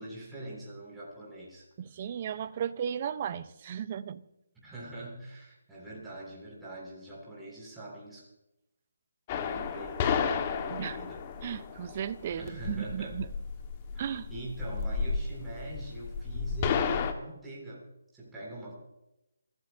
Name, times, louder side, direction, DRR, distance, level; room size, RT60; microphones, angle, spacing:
voice 1, 0.0-1.7 4.6-8.3 9.3-11.2 12.4-13.2 13.9-17.9 18.1-18.7, right 2 dB, 5° right, -6 dB, 7.6 m, -43 dB
voice 2, 1.8-4.2 10.7-11.0 11.4-13.3 14.0-14.3, right 8 dB, 35° right, 13 dB, 1.0 m, -35 dB
sound 1, 9.3-17.1, left 6 dB, 25° left, 1.7 m, -32 dB
28.0 x 16.5 x 2.9 m, 0.89 s
figure-of-eight pair, 160°, 0 cm